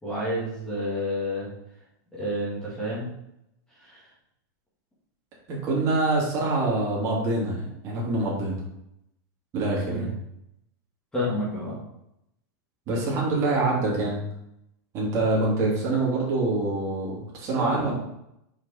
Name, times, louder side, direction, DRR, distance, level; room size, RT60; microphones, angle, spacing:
voice 1, 0.0-1.5 2.1-3.1 3.8-4.0 9.9-10.1 11.1-11.8 17.5-17.9, equal, 5° left, -8 dB, 1.9 m, -29 dB
voice 2, 5.5-8.6 9.5-10.1 12.9-14.2 14.9-17.9, right 2 dB, 30° right, -4 dB, 2.6 m, -25 dB
5.9 x 5.1 x 4.2 m, 0.81 s
supercardioid pair, 165°, 10 cm